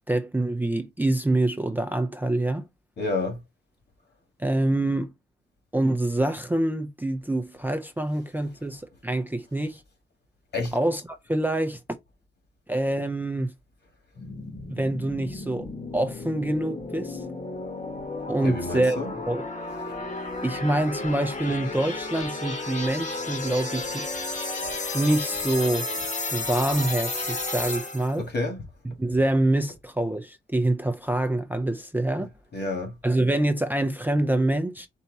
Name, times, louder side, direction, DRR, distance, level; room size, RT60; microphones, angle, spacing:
voice 1, 0.1-2.7 4.4-5.1 5.7-9.8 10.7-11.8 12.7-13.5 14.7-17.2 18.3-19.0 19.3-19.4 20.4-24.1 24.9-25.9 26.3-28.3 29.0-32.3 33.0-34.9, right 1 dB, 10° right, 0.5 m, -26 dB
voice 2, 3.0-3.4 10.5-10.7 18.4-19.1 28.2-28.6 32.5-32.9, left 2 dB, 55° left, 1.9 m, -29 dB
sound 1, 14.2-28.2, left 3 dB, 35° left, 1.2 m, -33 dB
4.6 x 2.8 x 4.0 m
wide cardioid pair, 120°, 21 cm